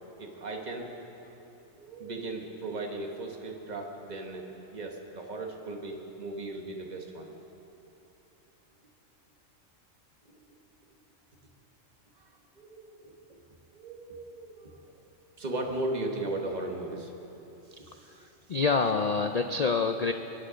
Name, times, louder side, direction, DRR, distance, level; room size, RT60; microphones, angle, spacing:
voice 1, 0.2-0.9 1.3-1.4 1.7-7.3 10.5-10.6 12.2-12.3 12.5-13.4 13.7-14.8 15.4-18.3, right 2 dB, 35° right, 1 dB, 1.5 m, -37 dB
voice 2, 18.1-20.1, left 4 dB, 75° left, 7 dB, 0.3 m, -27 dB
23.0 x 10.5 x 5.1 m, 3.0 s
omnidirectional pair, 1.3 m